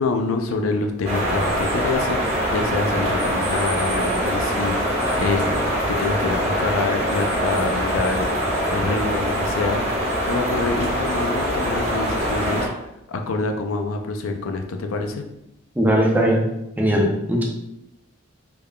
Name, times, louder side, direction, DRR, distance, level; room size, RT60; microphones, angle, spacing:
voice 1, 0.0-4.8 5.2-8.3 8.7-9.8 10.3-12.7 13.1-15.3, left 3 dB, 85° left, 5 dB, 0.5 m, -26 dB
sound 1, 1.0-12.7, equal, 30° right, 1.2 m, -23 dB
voice 2, 15.8-16.5 16.8-17.4, equal, 10° right, -2 dB, 0.6 m, -19 dB
3.5 x 3.4 x 2.3 m, 0.86 s
head